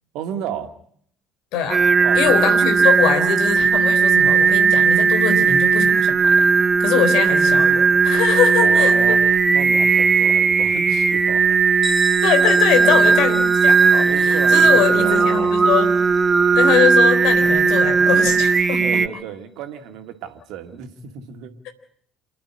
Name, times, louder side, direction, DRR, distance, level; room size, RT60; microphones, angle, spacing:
voice 1, 0.1-0.7 2.0-2.5 8.6-9.2 9.5-11.5 13.0-13.1 13.7-15.6 18.8-21.6, right 9 dB, 60° right, 7 dB, 2.2 m, -33 dB
voice 2, 1.5-1.8 2.1-6.4 6.8-9.2 12.2-15.9 16.5-19.0, left 8 dB, 60° left, 8 dB, 3.7 m, -22 dB
Singing, 1.7-19.1, right 5 dB, 30° right, 1.2 m, -16 dB
Bell, 11.8-17.3, left 2 dB, 20° left, 3.0 m, -36 dB
28.0 x 12.0 x 9.7 m, 0.65 s
figure-of-eight pair, 55°, 0 cm